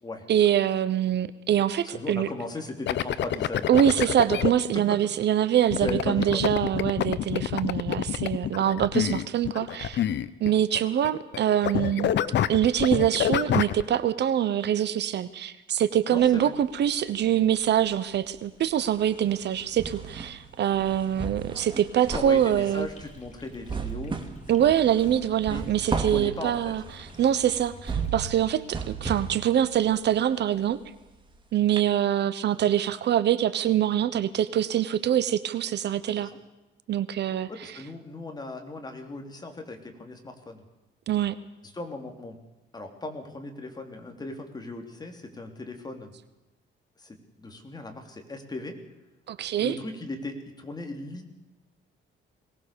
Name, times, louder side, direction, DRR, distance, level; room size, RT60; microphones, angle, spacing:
voice 1, 0.3-2.3 3.7-10.1 10.4-12.1 12.5-22.9 24.5-30.8 31.5-36.3 36.9-37.7 41.1-41.4 49.3-49.7, right 10 dB, 60° right, 14 dB, 1.0 m, -24 dB
voice 2, 1.8-4.1 4.7-5.0 5.8-6.5 16.1-16.5 22.1-24.2 25.5-26.7 36.2-36.3 37.5-40.6 41.7-42.4 42.7-46.1 47.0-48.8 49.6-51.3, left 2 dB, 20° left, 4 dB, 3.3 m, -37 dB
sound 1, 2.9-4.5 5.7-11.4 11.6-13.8, left 11 dB, 60° left, 1.0 m, -27 dB
sound 2, 16.2-17.3 17.6-31.4 31.8-31.9, right 5 dB, 25° right, 2.7 m, -36 dB
sound 3, 22.5-28.6, left 3 dB, 35° left, 3.4 m, -49 dB
22.5 x 19.0 x 7.0 m, 1.0 s
cardioid pair, 140°, 20 cm